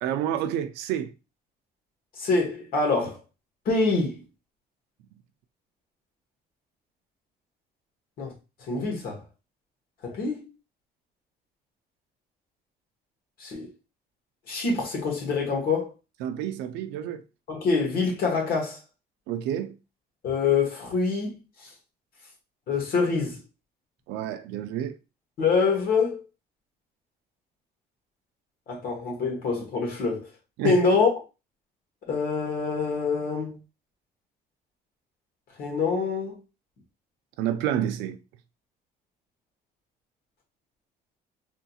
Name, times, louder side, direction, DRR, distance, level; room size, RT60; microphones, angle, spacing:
voice 1, 0.0-1.1 16.2-17.2 19.3-19.8 24.1-25.0 30.6-30.8 37.4-38.2, right 10 dB, 90° right, 0.4 m, -29 dB
voice 2, 2.2-3.2 3.6-4.2 8.2-8.3 8.7-9.2 10.0-10.4 13.4-13.7 14.5-15.9 17.5-18.8 20.2-21.7 22.7-23.4 25.4-26.2 28.7-30.3 30.6-31.1 32.1-33.6 35.6-36.4, left 4 dB, 60° left, 1.3 m, -25 dB
3.6 x 2.8 x 2.3 m
cardioid pair, 110°, 17 cm